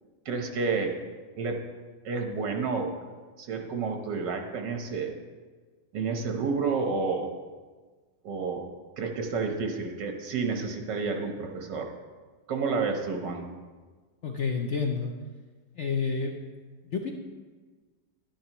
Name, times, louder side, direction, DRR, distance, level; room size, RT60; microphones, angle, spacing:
voice 1, 0.3-0.9 1.4-1.6 2.1-2.9 3.4-5.1 5.9-7.3 8.2-8.6 9.0-11.9 12.5-13.5, right 4 dB, 75° right, 4 dB, 1.7 m, -30 dB
voice 2, 14.2-15.1 15.7-16.4 16.8-17.1, left 5 dB, 60° left, 2 dB, 0.7 m, -29 dB
11.0 x 10.0 x 3.0 m, 1.4 s
omnidirectional pair, 1.9 m